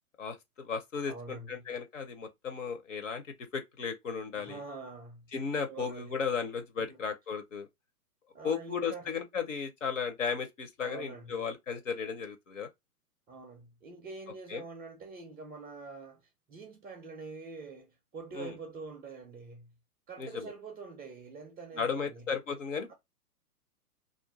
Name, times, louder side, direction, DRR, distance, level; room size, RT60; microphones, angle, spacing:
voice 1, 0.2-4.6 5.3-7.7 8.4-12.7 14.5-14.6 18.3-18.5 20.2-20.5 21.7-22.9, left 6 dB, 55° left, 0.8 m, -35 dB
voice 2, 1.1-1.7 4.3-6.2 6.8-7.0 8.3-9.1 10.8-11.5 13.3-19.7 20.1-22.3, right 4 dB, 10° right, 0.5 m, -45 dB
2.5 x 2.5 x 3.6 m
figure-of-eight pair, 115°, 46 cm